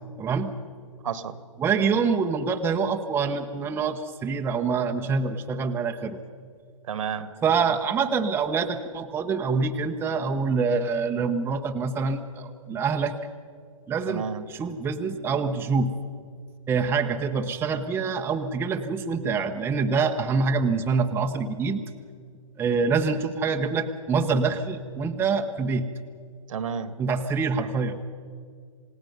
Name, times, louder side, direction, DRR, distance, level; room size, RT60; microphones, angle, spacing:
voice 1, 0.2-0.5 1.6-6.2 7.4-13.1 13.9-15.9 16.7-21.8 22.6-25.9 27.0-27.9, right 5 dB, 10° right, 4 dB, 0.9 m, -25 dB
voice 2, 1.0-1.4 6.9-7.3 14.0-14.4 26.5-26.9, right 7 dB, 65° right, 11 dB, 1.7 m, -31 dB
28.5 x 17.5 x 5.4 m, 2.1 s
hypercardioid pair, 130°, 18 cm